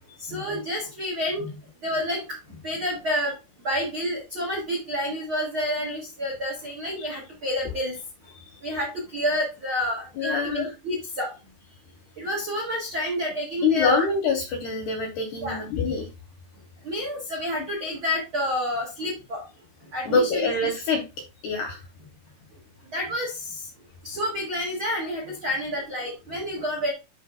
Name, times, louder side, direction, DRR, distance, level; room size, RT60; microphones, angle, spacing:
voice 1, 0.2-1.6 1.8-3.3 3.6-8.0 8.6-11.3 12.2-14.1 15.4-15.6 16.8-19.4 19.9-20.4 22.9-23.7 24.0-26.9, equal, 60° right, -1 dB, 1.4 m, -29 dB
voice 2, 10.2-10.7 13.6-16.1 20.1-21.0 21.4-21.8, left 4 dB, 75° left, 4 dB, 2.5 m, -25 dB
11.5 x 4.7 x 2.4 m, 0.27 s
omnidirectional pair, 5.8 m